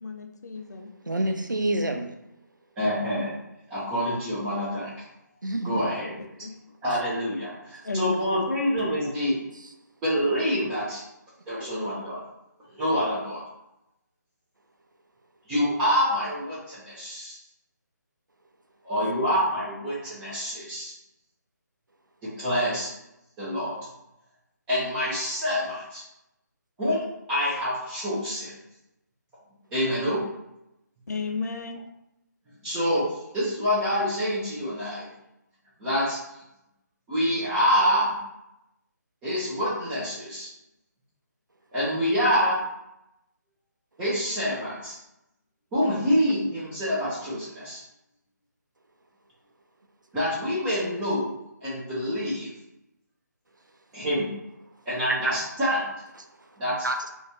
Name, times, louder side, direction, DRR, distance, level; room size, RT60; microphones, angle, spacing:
voice 1, 0.0-0.9 6.4-6.5 7.8-8.2 31.1-31.8, left 3 dB, 65° left, 4 dB, 0.4 m, -32 dB
voice 2, 1.1-2.1 5.4-5.9 9.0-9.1 55.1-55.3 56.8-57.0, right 1 dB, 90° right, 5 dB, 0.4 m, -27 dB
voice 3, 2.8-3.4 3.7-4.9 5.6-6.1 6.8-9.4 10.0-11.0 11.5-12.2 12.7-13.4 15.5-17.4 18.8-20.9 22.2-22.9 23.4-23.8 24.7-26.0 26.8-28.5 29.7-30.2 32.6-35.1 35.8-36.2 37.1-38.2 39.2-40.5 41.7-42.6 44.0-45.0 45.7-47.8 50.1-52.5 53.9-54.3 54.9-55.8 56.6-56.9, equal, 5° right, -11 dB, 0.3 m, -26 dB
2.4 x 2.2 x 2.9 m, 0.87 s
figure-of-eight pair, 150°, 10 cm